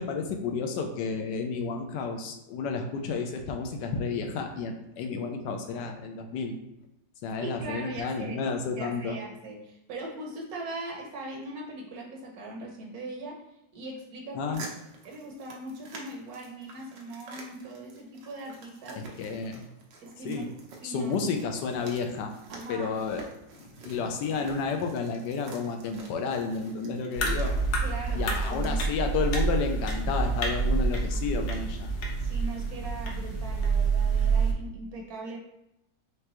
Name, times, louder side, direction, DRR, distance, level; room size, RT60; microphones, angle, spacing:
voice 1, 0.0-6.6 7.2-9.2 14.3-14.6 18.9-19.7 20.2-20.5 20.8-22.3 22.7-23.2 23.5-27.6 28.1-31.9, left 5 dB, 75° left, 5 dB, 1.2 m, -31 dB
voice 2, 7.4-8.4 8.8-13.4 13.7-14.6 15.0-19.0 20.0-20.5 20.8-21.1 22.5-22.9 27.8-29.1 32.2-35.4, right 2 dB, 65° right, 0 dB, 1.2 m, -40 dB
sound 1, 14.5-28.7, right 3 dB, 90° right, 1.5 m, -48 dB
sound 2, 27.2-34.5, right 4 dB, 60° left, 0.7 m, -27 dB
4.9 x 3.2 x 2.9 m, 0.87 s
omnidirectional pair, 1.9 m